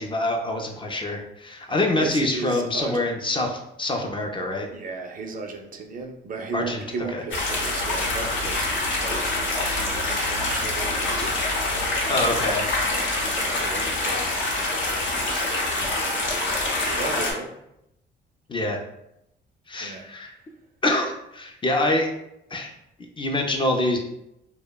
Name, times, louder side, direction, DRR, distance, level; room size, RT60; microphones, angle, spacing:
voice 1, 0.0-4.7 6.5-6.8 7.1-7.2 12.1-12.8 18.5-18.8 19.7-20.3 20.8-22.1 22.5-22.7 23.2-24.0, left 1 dB, 25° left, 2 dB, 0.4 m, -25 dB
voice 2, 1.7-3.1 4.7-9.7 10.1-11.4 13.3-17.5 19.8-20.0, right 4 dB, 45° right, 3 dB, 0.4 m, -36 dB
sound 1, 7.3-17.3, left 2 dB, 70° left, 0.7 m, -25 dB
2.7 x 2.0 x 2.2 m, 0.82 s
cardioid pair, 90°, 20 cm